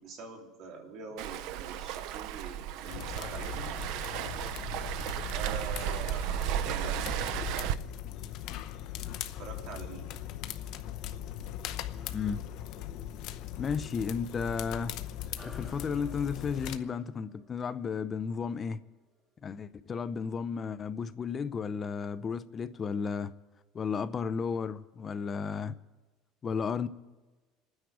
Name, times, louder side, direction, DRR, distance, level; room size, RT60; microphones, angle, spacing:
voice 1, 0.0-3.7 5.3-7.0 7.2-8.0 9.4-10.0, right 5 dB, 50° right, 2.8 m, -44 dB
Waves surf, 1.2-7.7, right 11 dB, 65° right, 0.5 m, -34 dB
sound 1, 2.8-16.8, left 11 dB, 55° left, 0.7 m, -40 dB
voice 2, 13.6-14.9 15.4-18.8 19.4-23.3 23.7-25.7 26.4-26.9, left 6 dB, 25° left, 0.5 m, -33 dB
sound 2, 15.4-20.2, equal, 5° right, 1.6 m, -57 dB
28.0 x 9.7 x 4.9 m
cardioid pair, 160°, 0 cm